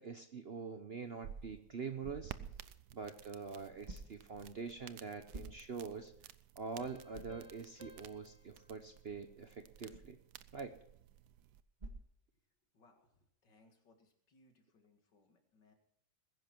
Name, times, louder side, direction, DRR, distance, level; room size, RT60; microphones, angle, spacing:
voice 1, 0.0-2.3 2.9-6.1 6.6-10.2 10.5-10.7, right 5 dB, 45° right, 8 dB, 0.8 m, -45 dB
sound 1, 1.0-11.6, right 10 dB, 70° right, 1.2 m, -55 dB
sound 2, 6.8-10.1, left 3 dB, 5° left, 2.9 m, -60 dB
sound 3, 9.7-12.9, right 1 dB, 25° right, 1.8 m, -57 dB
voice 2, 12.7-15.7, left 2 dB, 75° left, 5 dB, 2.7 m, -69 dB
20.5 x 10.5 x 4.5 m, 0.73 s
omnidirectional pair, 1.9 m